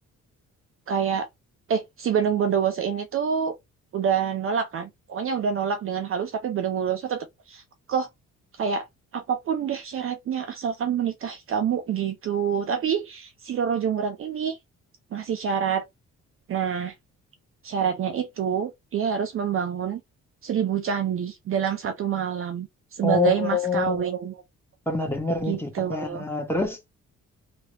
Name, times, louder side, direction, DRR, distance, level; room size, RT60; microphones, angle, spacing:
voice 1, 0.9-1.3 1.7-3.6 3.9-7.6 7.9-8.1 8.6-8.9 9.1-14.6 15.1-15.8 16.5-16.9 17.6-20.0 20.4-24.4 25.5-26.2, right 7 dB, 45° right, 0.5 m, -27 dB
voice 2, 23.0-24.0 24.9-26.8, left 4 dB, 5° left, 1.2 m, -26 dB
3.0 x 2.5 x 3.1 m
cardioid pair, 90°, 30 cm